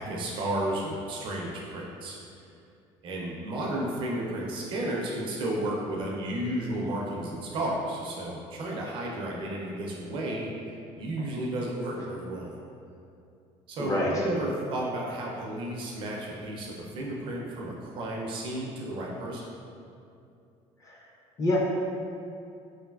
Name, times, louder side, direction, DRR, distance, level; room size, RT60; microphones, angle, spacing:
voice 1, 0.0-2.2 3.0-10.5 11.0-12.6 13.7-19.5, right 1 dB, 45° right, -3 dB, 0.4 m, -33 dB
voice 2, 13.8-14.2 20.8-21.0 21.4-21.6, left 1 dB, 25° left, -4 dB, 0.4 m, -26 dB
3.2 x 2.5 x 2.3 m, 2.5 s
cardioid pair, 170°, 12 cm